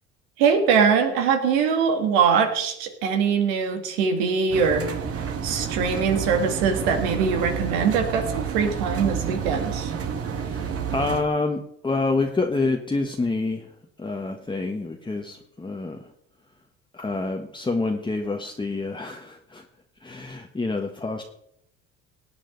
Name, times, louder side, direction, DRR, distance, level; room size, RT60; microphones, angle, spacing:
voice 1, 0.4-4.8 5.4-9.9, right 6 dB, 80° right, 5 dB, 2.4 m, -22 dB
Engine, 4.5-11.2, right 7 dB, 45° right, 2.0 m, -29 dB
voice 2, 10.4-13.7 14.0-16.1 16.9-19.6 20.0-21.2, left 3 dB, 15° left, 2 dB, 1.4 m, -27 dB
17.5 x 9.1 x 4.0 m, 0.73 s
supercardioid pair, 75°, 32 cm